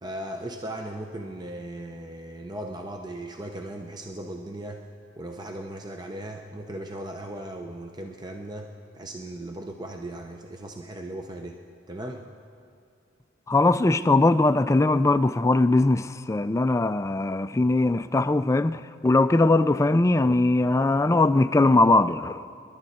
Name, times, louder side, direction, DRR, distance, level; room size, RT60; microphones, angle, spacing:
voice 1, 0.0-4.8 5.2-11.6 11.9-12.3, right 1 dB, 20° right, 0.6 m, -37 dB
voice 2, 13.5-22.4, left 2 dB, 15° left, 0.3 m, -21 dB
26.5 x 11.5 x 4.2 m
head